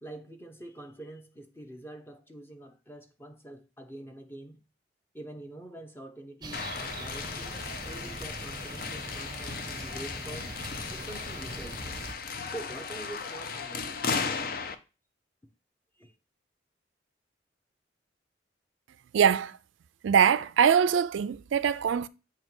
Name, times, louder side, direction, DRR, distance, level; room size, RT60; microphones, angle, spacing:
voice 1, 0.0-4.6 5.1-10.5 10.9-11.9 12.5-13.9 16.0-16.1, right 1 dB, 10° left, 0.7 m, -45 dB
sound 1, 6.4-12.1, right 2 dB, 20° right, 0.6 m, -42 dB
sound 2, 6.5-14.8, left 5 dB, 50° left, 0.5 m, -36 dB
voice 2, 19.1-19.6 20.0-22.1, right 7 dB, 85° right, 0.3 m, -23 dB
7.5 x 2.9 x 4.4 m
head